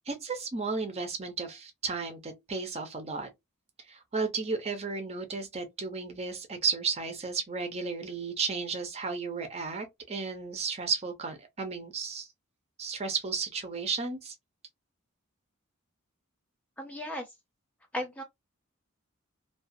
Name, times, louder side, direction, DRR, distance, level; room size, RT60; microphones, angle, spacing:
voice 1, 0.1-3.3 3.9-12.3 12.8-14.3, right 4 dB, 30° right, 0.6 m, -33 dB
voice 2, 16.8-17.3 17.9-18.2, left 1 dB, 5° left, 0.4 m, -35 dB
2.4 x 2.3 x 2.6 m
head